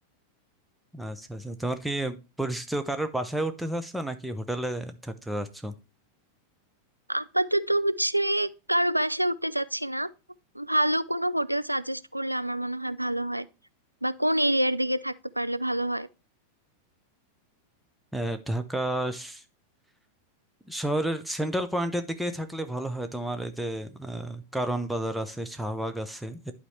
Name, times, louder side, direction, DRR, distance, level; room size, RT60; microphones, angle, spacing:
voice 1, 0.9-5.7 18.1-19.4 20.7-26.5, right 1 dB, ahead, 0.8 m, -31 dB
voice 2, 7.1-10.1 10.6-13.5 14.0-16.1, right 1 dB, 90° right, 0.3 m, -27 dB
11.0 x 4.2 x 3.2 m
figure-of-eight pair, 90°, 0 cm